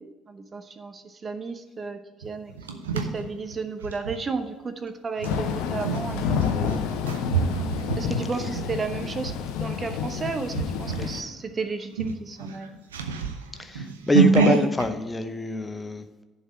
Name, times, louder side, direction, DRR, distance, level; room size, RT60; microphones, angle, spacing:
voice 1, 0.0-6.8 7.9-12.7, right 4 dB, 35° right, 9 dB, 0.9 m, -33 dB
sound 1, 2.2-4.2 5.2-9.4 9.9-10.1 10.5-11.2 11.5-11.6 11.9-14.9, right 5 dB, 80° right, 0.6 m, -27 dB
Thunder / Rain, 5.2-11.2, left 7 dB, 70° left, 0.8 m, -29 dB
voice 2, 13.6-16.2, left 1 dB, 20° left, 8 dB, 0.8 m, -25 dB
11.0 x 4.1 x 7.7 m, 1.3 s
figure-of-eight pair, 50°, 0 cm